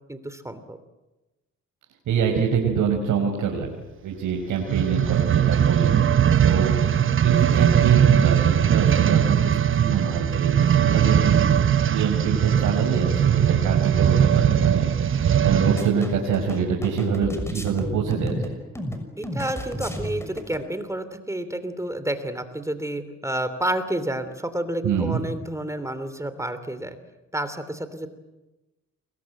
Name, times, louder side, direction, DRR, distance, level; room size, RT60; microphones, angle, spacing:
voice 1, 0.1-0.8 19.2-27.0 27.3-28.1, right 1 dB, 10° right, 11 dB, 3.1 m, -30 dB
voice 2, 2.1-3.7 4.0-5.9 6.4-11.5 11.8-18.5 24.8-25.2, right 7 dB, 80° right, 1 dB, 5.3 m, -25 dB
sound 1, 4.6-16.0 16.6-16.7, right 9 dB, 45° right, 1.0 m, -20 dB
sound 2, 15.8-20.6, equal, 10° left, 6.4 m, -32 dB
29.0 x 22.5 x 7.9 m, 1.0 s
cardioid pair, 90°, 30 cm